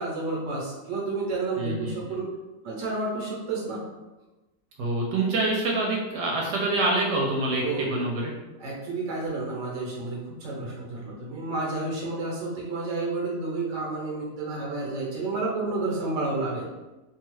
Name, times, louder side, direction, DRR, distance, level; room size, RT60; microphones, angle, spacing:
voice 1, 0.0-2.3 2.6-3.8 7.6-8.0 8.6-16.6, right 3 dB, 50° right, -4 dB, 1.1 m, -30 dB
voice 2, 1.6-1.9 4.8-8.3, right 2 dB, 80° right, -2 dB, 1.2 m, -26 dB
2.8 x 2.3 x 3.1 m, 1.1 s
omnidirectional pair, 1.8 m